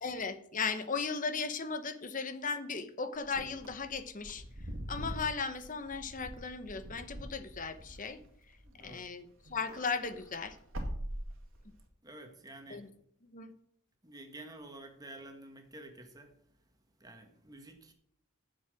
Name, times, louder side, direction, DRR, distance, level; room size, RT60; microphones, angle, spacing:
voice 1, 0.0-4.4 4.9-8.2 8.8-10.6 12.7-12.9 13.3-13.5, left 5 dB, 40° left, 10 dB, 1.0 m, -36 dB
Wind / Car, 3.2-9.1 9.4-11.8, equal, 75° right, 2.3 m, -43 dB
voice 2, 8.7-9.1 12.0-12.8 14.0-16.3 17.0-17.9, right 1 dB, 20° right, 5 dB, 1.7 m, -50 dB
9.9 x 7.5 x 6.2 m, 0.66 s
head